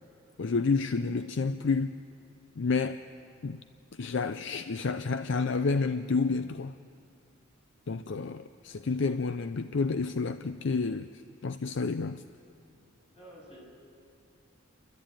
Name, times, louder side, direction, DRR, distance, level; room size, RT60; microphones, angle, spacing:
voice 1, 0.4-1.9 2.6-3.0 3.4-3.6 3.9-6.7 7.9-11.1 11.4-12.2, left 4 dB, 60° left, 11 dB, 0.5 m, -29 dB
voice 2, 13.0-13.6, equal, 30° left, -4 dB, 7.6 m, -50 dB
29.0 x 13.0 x 8.9 m, 2.6 s
head